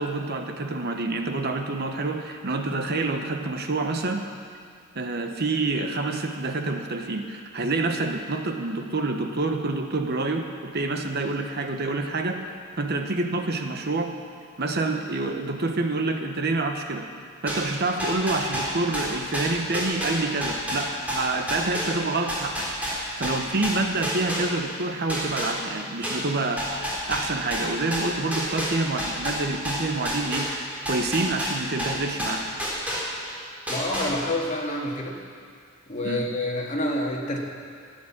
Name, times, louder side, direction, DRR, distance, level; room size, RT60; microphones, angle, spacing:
voice 1, 0.0-4.2 4.9-12.4 12.8-14.1 14.6-17.1 17.4-22.7 22.9-26.6 27.1-30.5 30.9-32.4 36.0-36.2, right 3 dB, 50° right, 5 dB, 1.0 m, -27 dB
sound 1, 17.5-24.8 25.1-33.3 33.7-34.5, equal, 5° right, 3.4 m, -30 dB
voice 2, 33.7-35.2 35.9-37.4, left 1 dB, 35° left, -1 dB, 1.9 m, -28 dB
15.0 x 9.4 x 7.3 m, 2.2 s
head